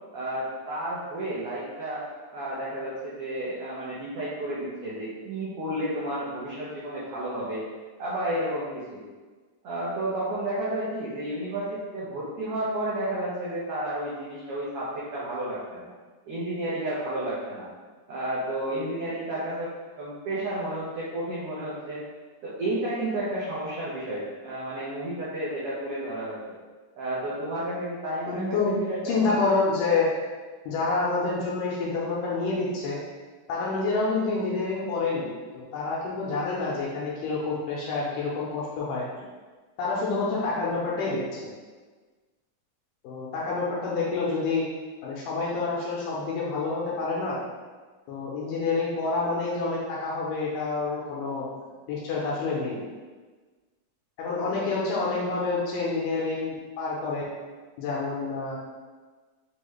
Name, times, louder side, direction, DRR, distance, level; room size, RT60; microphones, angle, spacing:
voice 1, 0.1-2.0 2.3-7.6 8.0-9.0 9.6-15.9 16.2-17.7 18.1-19.7 20.0-22.0 22.4-26.4 26.9-29.2, right 1 dB, 85° right, -9 dB, 1.2 m, -31 dB
voice 2, 28.3-30.1 30.7-33.0 33.5-35.3 35.7-39.1 39.8-41.5 43.0-44.6 45.0-47.4 48.1-51.4 51.9-52.8 54.2-57.2 57.8-58.5, left 3 dB, 85° left, -5 dB, 2.2 m, -28 dB
5.9 x 2.3 x 3.1 m, 1.4 s
omnidirectional pair, 3.7 m